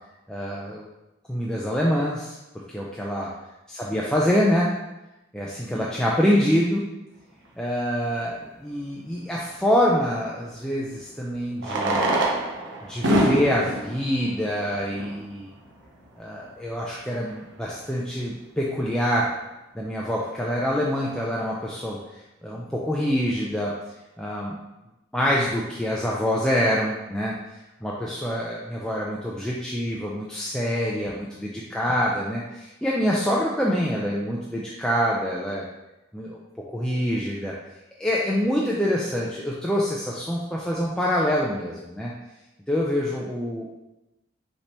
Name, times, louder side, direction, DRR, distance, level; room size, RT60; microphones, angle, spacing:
voice 1, 0.3-0.9 1.3-3.3 3.7-4.8 5.3-6.9 7.6-12.0 12.8-15.5 16.2-19.3 19.7-22.0 22.4-23.8 24.2-24.6 25.1-27.4 27.8-35.7 36.1-36.4 36.7-37.6 38.0-42.1 42.7-43.7, equal, 5° left, -4 dB, 0.4 m, -25 dB
Fireworks, 8.0-8.1 10.4-10.5 11.5-15.3 16.1-16.2 16.4-16.5 16.7-16.8 17.3-17.5, right 1 dB, 65° right, 0.7 m, -25 dB
5.4 x 3.3 x 3.0 m, 0.97 s
head